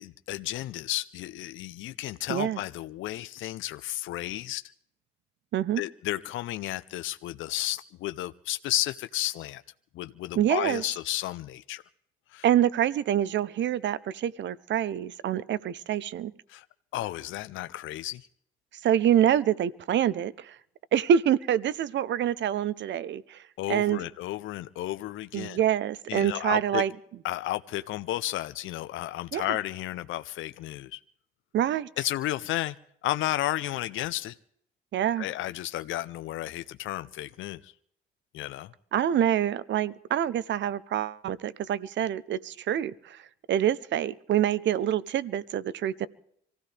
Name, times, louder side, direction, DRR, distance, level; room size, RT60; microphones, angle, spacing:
voice 1, 0.0-4.6 5.8-9.6 9.9-11.8 12.3-12.5 16.5-16.6 16.9-18.2 23.6-25.6 26.1-26.8 27.2-31.0 32.0-32.8 33.0-34.3 35.2-37.7 38.3-38.7, left 15 dB, 80° left, 12 dB, 0.6 m, -32 dB
voice 2, 10.3-10.8 12.4-16.3 18.8-20.5 20.9-23.4 23.7-24.0 25.3-26.9 29.3-29.4 31.5-31.9 34.9-35.3 38.9-42.9 43.5-46.1, right 10 dB, 65° right, 19 dB, 0.8 m, -26 dB
26.0 x 16.0 x 3.4 m, 0.68 s
cardioid pair, 90°, 20 cm